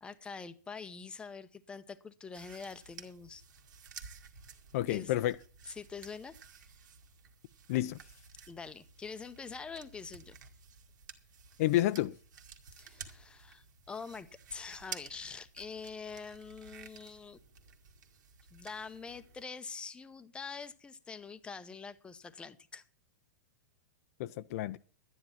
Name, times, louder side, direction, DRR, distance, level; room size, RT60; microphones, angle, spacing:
voice 1, 0.0-3.4 4.9-5.1 5.7-6.7 8.5-10.4 12.7-17.4 18.5-22.8, left 5 dB, 10° left, 0.7 m, -45 dB
sound 1, 2.3-19.4, right 7 dB, 75° right, 2.1 m, -53 dB
voice 2, 4.7-5.3 7.7-8.0 11.6-12.1 24.2-24.8, left 14 dB, 50° left, 0.5 m, -30 dB
12.0 x 9.8 x 5.8 m
hypercardioid pair, 145°, 10 cm